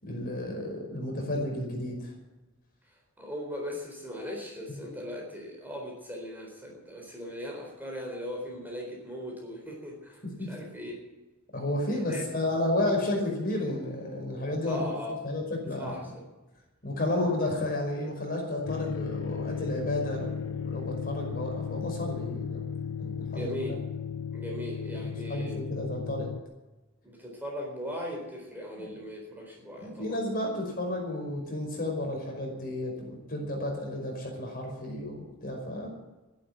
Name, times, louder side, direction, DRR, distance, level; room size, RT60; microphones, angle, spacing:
voice 1, 0.0-2.1 10.4-10.5 11.5-14.8 15.1-15.9 16.8-22.7 23.0-23.8 24.9-26.3 28.8-28.9 29.8-35.9, left 1 dB, 40° left, 1 dB, 5.3 m, -32 dB
voice 2, 3.2-11.0 12.1-12.2 14.7-15.1 15.8-16.2 23.3-23.8 24.3-25.6 27.0-30.2, equal, 10° right, 0 dB, 4.0 m, -38 dB
sound 1, 18.7-26.4, left 7 dB, 65° left, 0.6 m, -35 dB
13.0 x 11.0 x 9.3 m, 1.1 s
head